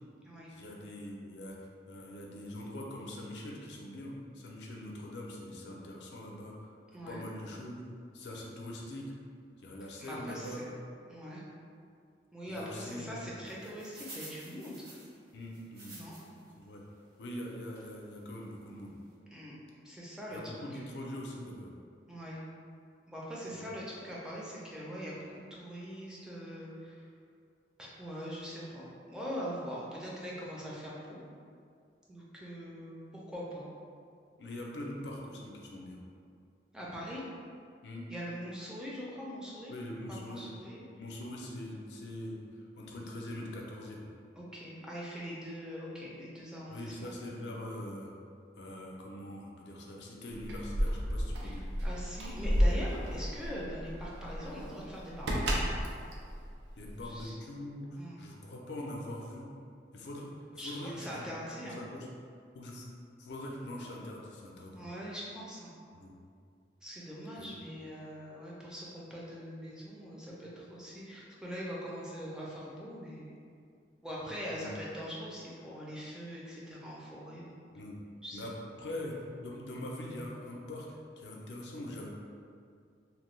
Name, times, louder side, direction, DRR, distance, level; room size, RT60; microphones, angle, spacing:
voice 1, 0.5-6.5 7.1-7.8 8.1-9.1 9.6-10.7 12.5-13.4 15.3-16.0 16.6-16.8 17.2-18.9 20.3-21.7 23.5-23.6 34.4-36.0 37.8-38.1 39.7-40.5 41.0-42.4 42.8-44.1 46.7-48.1 48.6-51.6 56.8-59.5 59.9-61.3 61.6-62.1 62.5-62.8 63.2-64.8 65.9-66.1 67.4-67.5 74.5-74.7 77.6-78.0 78.3-78.5 78.8-80.9 81.2-82.1, left 1 dB, 70° left, -2 dB, 0.5 m, -43 dB
voice 2, 10.0-10.6 11.1-11.4 12.3-14.9 15.9-16.2 19.3-19.5 19.8-20.8 22.1-22.4 23.1-27.0 27.8-31.2 32.1-33.0 33.3-33.7 36.7-37.2 38.1-39.8 40.1-40.8 44.4-47.1 51.4-55.7 57.0-57.3 58.0-58.2 60.6-61.8 64.7-65.7 66.8-73.3 74.0-77.6 78.2-78.4, equal, 5° right, -6 dB, 0.4 m, -42 dB
sound 1, 13.5-16.5 16.9-17.0 17.8-17.9 18.4-18.5 18.7-18.9, right 2 dB, 60° right, 1.2 m, -50 dB
Keys jangling, 50.3-57.2, equal, 85° right, 0.5 m, -32 dB
2.9 x 2.2 x 3.1 m, 2.3 s
head